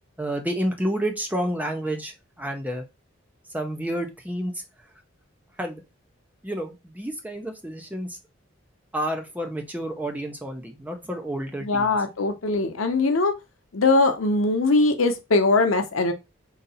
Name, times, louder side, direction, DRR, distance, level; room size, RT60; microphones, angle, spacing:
voice 1, 0.2-2.8 3.5-4.6 5.6-5.8 6.4-8.2 8.9-12.0, right 1 dB, 10° right, 0.6 m, -30 dB
voice 2, 11.6-13.3 13.7-16.1, left 3 dB, 85° left, 0.8 m, -21 dB
3.9 x 2.7 x 4.0 m
head